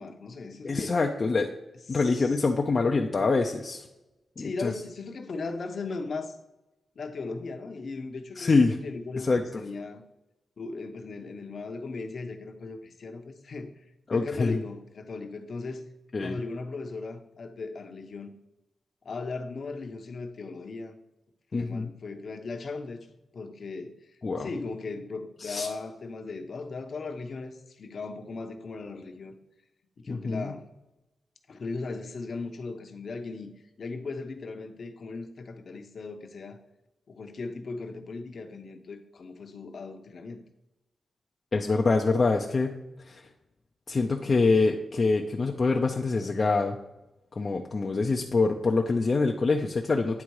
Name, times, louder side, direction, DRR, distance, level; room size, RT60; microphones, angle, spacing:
voice 1, 0.0-0.9 1.9-2.4 4.4-6.4 7.0-10.0 10.6-13.7 14.1-15.8 16.2-18.3 19.0-20.9 21.5-23.9 24.4-29.4 30.0-30.6 31.5-33.5 33.8-36.6 37.1-40.4, left 3 dB, 55° left, 6 dB, 0.8 m, -37 dB
voice 2, 0.6-1.5 1.9-3.9 4.4-4.7 8.4-8.8 9.1-9.6 14.1-14.6 16.1-16.4 21.5-21.9 24.2-24.5 25.4-25.7 30.1-30.5 41.5-42.7 43.0-43.2 43.9-46.8 47.4-50.2, left 3 dB, 40° left, 2 dB, 0.5 m, -25 dB
9.5 x 3.7 x 4.7 m, 0.96 s
wide cardioid pair, 110°, 0 cm